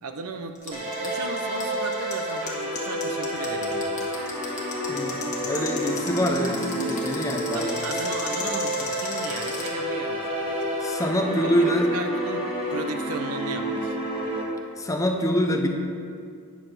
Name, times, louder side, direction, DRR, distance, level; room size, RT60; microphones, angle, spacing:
voice 1, 0.0-4.1 7.5-10.8 11.4-14.0, right 4 dB, 80° right, 7 dB, 0.6 m, -36 dB
sound 1, 0.6-9.7, left 5 dB, 35° left, 1.5 m, -35 dB
sound 2, 0.7-14.4, equal, 30° right, 1.9 m, -29 dB
voice 2, 4.9-7.8 10.8-11.9 14.8-15.7, equal, 15° left, 3 dB, 0.6 m, -25 dB
9.4 x 4.0 x 6.6 m, 2.3 s
head